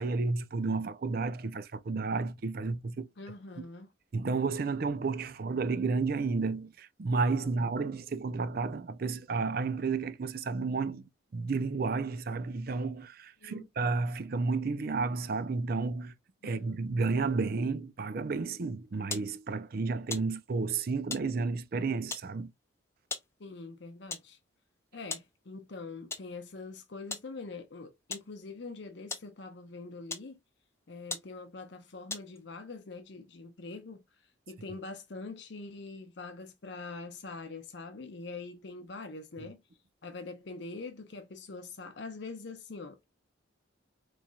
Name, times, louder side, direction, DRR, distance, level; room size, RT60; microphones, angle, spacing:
voice 1, 0.0-3.1 4.1-11.0 11.3-16.1 16.4-22.5, right 4 dB, 50° right, 0.4 m, -32 dB
voice 2, 3.2-3.9 7.4-7.6 13.4-13.7 16.4-16.8 23.4-24.4 24.9-30.4 30.9-34.0 34.5-39.6 40.0-43.0, left 3 dB, 60° left, 0.6 m, -44 dB
sound 1, 19.1-19.3 20.1-20.3 21.1-21.3 22.1-22.3 23.1-23.3 24.1-24.3 25.1-25.3 26.1-26.3 27.1-27.3 28.1-28.3 29.1-29.3 30.1-30.3 30.8-30.9 31.1-31.3 32.1-32.4, left 4 dB, 15° left, 0.5 m, -38 dB
4.2 x 3.1 x 2.3 m
head